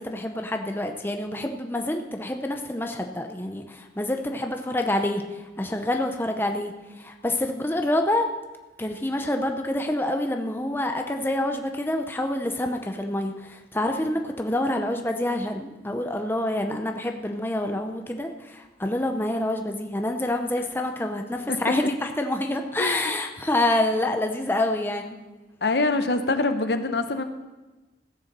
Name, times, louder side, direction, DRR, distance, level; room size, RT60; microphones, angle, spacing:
voice 1, 0.0-8.3 8.8-25.2, left 1 dB, 10° left, 4 dB, 0.7 m, -27 dB
voice 2, 22.8-23.1 25.6-27.2, left 3 dB, 70° left, 8 dB, 0.9 m, -24 dB
15.5 x 6.8 x 6.7 m, 1.2 s
head